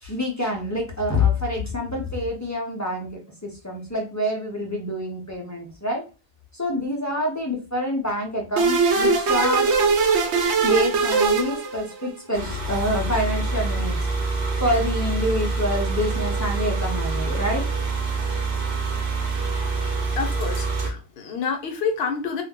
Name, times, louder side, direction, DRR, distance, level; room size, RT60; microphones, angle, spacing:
voice 1, 0.0-3.1 3.4-6.0 6.5-9.7 10.6-14.0 14.6-17.6, left 1 dB, 20° left, -1 dB, 0.5 m, -26 dB
sound 1, 8.6-12.1, right 4 dB, 85° right, 0.9 m, -20 dB
sound 2, 12.3-20.9, right 3 dB, 50° right, 0.7 m, -26 dB
voice 2, 20.2-22.4, left 5 dB, 70° left, 4 dB, 0.8 m, -28 dB
2.3 x 2.1 x 3.5 m, 0.32 s
omnidirectional pair, 1.1 m